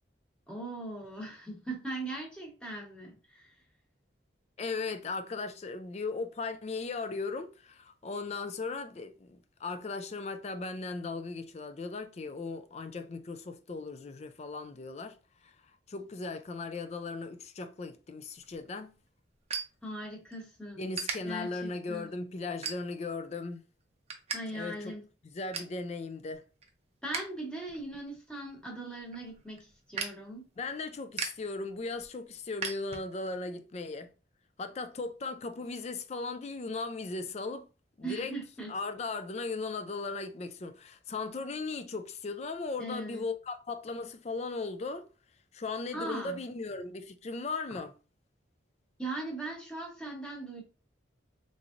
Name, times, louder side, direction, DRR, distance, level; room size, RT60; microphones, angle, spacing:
voice 1, 0.5-3.6 19.8-20.9 21.2-22.1 24.3-25.0 27.0-30.4 38.0-38.7 42.8-43.2 45.9-46.4 49.0-50.6, right 2 dB, 5° left, 1.0 m, -39 dB
voice 2, 4.6-15.2 15.4-15.6 15.9-18.9 20.8-23.6 24.5-24.9 25.3-26.4 30.6-34.1 34.6-37.7 38.0-38.3 38.7-45.1 45.5-47.9, left 3 dB, 35° left, 0.3 m, -37 dB
sound 1, 18.4-20.4 20.9-21.2 21.7-22.0 22.6-23.2 23.6-24.4 24.7-24.8 25.1-25.8 26.2-27.3 27.6-33.4, right 5 dB, 35° right, 0.6 m, -39 dB
3.7 x 3.0 x 2.5 m
head